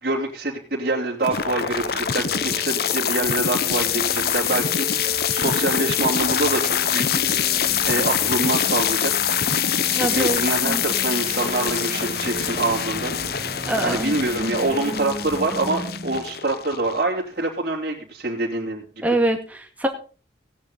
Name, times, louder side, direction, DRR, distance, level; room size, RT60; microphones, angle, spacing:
voice 1, 0.0-7.6 7.8-9.1 9.9-13.1 13.8-18.8, right 2 dB, 55° right, -3 dB, 3.0 m, -25 dB
sound 1, 1.2-17.2, left 9 dB, 55° left, 0.8 m, -24 dB
sound 2, 1.3-16.4, right 1 dB, 30° right, 1.9 m, -35 dB
voice 2, 9.9-10.8 13.7-14.2 19.0-19.9, right 1 dB, 10° right, 2 dB, 2.0 m, -24 dB
16.5 x 10.0 x 3.9 m, 0.38 s
head